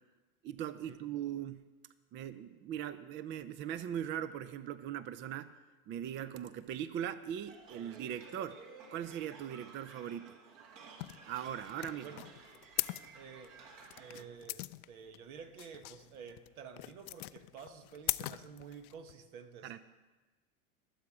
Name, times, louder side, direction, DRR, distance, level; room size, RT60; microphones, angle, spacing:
voice 1, 0.4-1.6 2.1-5.5 5.9-8.6 8.9-10.3 11.2-12.1 19.6-19.8, right 10 dB, 25° right, 14 dB, 0.4 m, -40 dB
sound 1, 7.5-14.3, right 4 dB, 55° right, 2.3 m, -54 dB
sound 2, 11.0-19.2, left 18 dB, 75° left, 0.6 m, -41 dB
voice 2, 11.9-12.3 13.1-13.5 14.0-19.8, right 6 dB, 70° right, 8 dB, 1.6 m, -50 dB
21.5 x 7.5 x 4.9 m, 1.2 s
hypercardioid pair, 100°, 44 cm